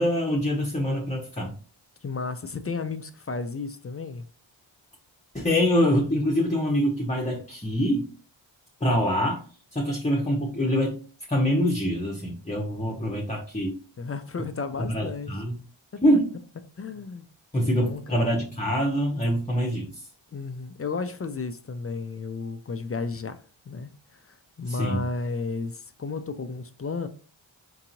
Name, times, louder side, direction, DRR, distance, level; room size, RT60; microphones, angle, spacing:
voice 1, 0.0-1.5 5.3-8.1 8.8-9.4 9.7-11.0 11.3-13.7 14.8-15.6 16.0-16.3 17.5-20.1 24.7-25.0, equal, 15° left, 0.8 m, -25 dB
voice 2, 2.0-4.3 12.9-13.2 14.0-15.3 15.9-16.0 16.8-17.3 17.6-18.2 20.3-27.1, left 4 dB, 30° left, 0.4 m, -33 dB
4.6 x 2.8 x 2.6 m
cardioid pair, 45°, 49 cm